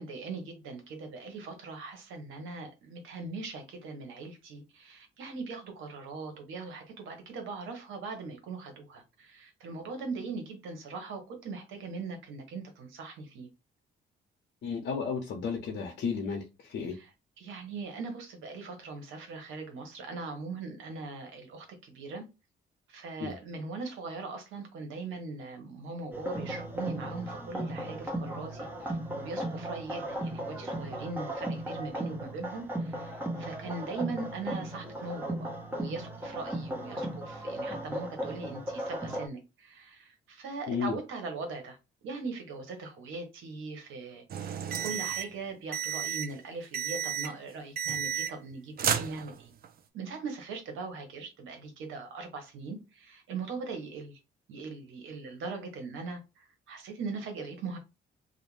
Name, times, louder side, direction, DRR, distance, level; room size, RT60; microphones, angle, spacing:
voice 1, 0.0-13.5 16.9-22.3 22.9-41.8 42.0-49.5 49.9-54.2 54.5-57.8, right 4 dB, 85° right, 0.9 m, -40 dB
voice 2, 14.6-17.0 23.2-23.4 40.7-41.0, left 5 dB, 65° left, 0.7 m, -33 dB
sound 1, 26.1-39.3, right 1 dB, 10° right, 0.7 m, -36 dB
sound 2, 44.3-45.3 45.7-46.3 46.7-47.4 47.8-48.5 48.8-49.7, right 8 dB, 50° right, 0.4 m, -32 dB
2.4 x 2.1 x 3.0 m
cardioid pair, 90°, 20 cm